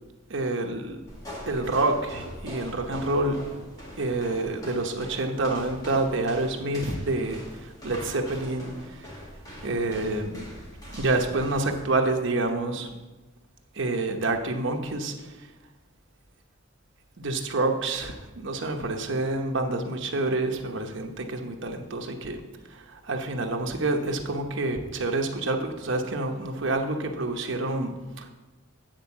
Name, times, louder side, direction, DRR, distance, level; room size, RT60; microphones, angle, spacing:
voice 1, 0.3-1.0 1.5-3.4 4.0-8.7 9.6-10.5 10.9-12.9 13.7-15.3 17.2-22.4 22.7-27.9 28.2-28.3, right 2 dB, 60° right, 4 dB, 0.9 m, -28 dB
sound 1, 1.1-11.8, equal, 20° left, 2.0 m, -42 dB
9.2 x 4.6 x 7.1 m, 1.2 s
head